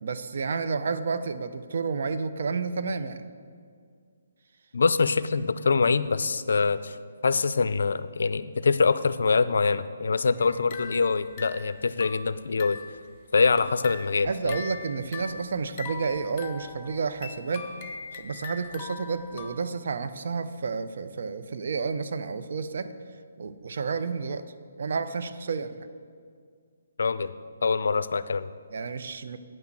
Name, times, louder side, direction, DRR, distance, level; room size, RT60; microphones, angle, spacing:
voice 1, 0.0-3.3 14.2-17.7 18.1-22.9 23.4-24.4 24.8-25.9 28.7-29.4, right 5 dB, 60° right, 10 dB, 0.6 m, -30 dB
voice 2, 4.7-7.0 7.2-12.8 13.3-14.5 27.0-27.3 27.6-28.5, left 4 dB, 70° left, 14 dB, 0.4 m, -24 dB
sound 1, 10.4-13.0 13.4-19.6, left 5 dB, 30° left, 0.7 m, -41 dB
9.1 x 5.9 x 7.4 m, 2.1 s
hypercardioid pair, 155°, 0 cm